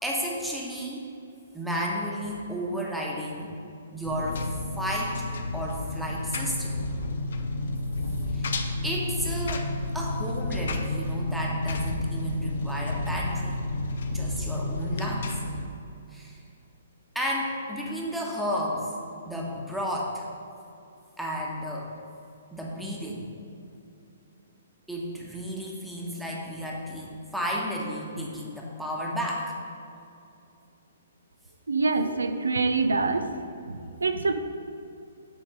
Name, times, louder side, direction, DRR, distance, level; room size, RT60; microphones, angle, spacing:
voice 1, 0.0-1.1 1.5-3.6 3.9-5.3 5.5-6.8 8.3-8.5 8.8-13.6 14.1-15.3 16.1-16.4 17.1-18.9 19.3-20.3 21.2-21.9 22.5-23.3 24.9-29.5, equal, ahead, -3 dB, 1.1 m, -32 dB
Engine, 4.0-15.7, left 2 dB, 65° left, 0.6 m, -31 dB
voice 2, 31.7-33.3 33.7-34.3, right 3 dB, 80° right, 9 dB, 0.5 m, -25 dB
9.1 x 3.6 x 4.8 m, 2.7 s
figure-of-eight pair, 125°, 0 cm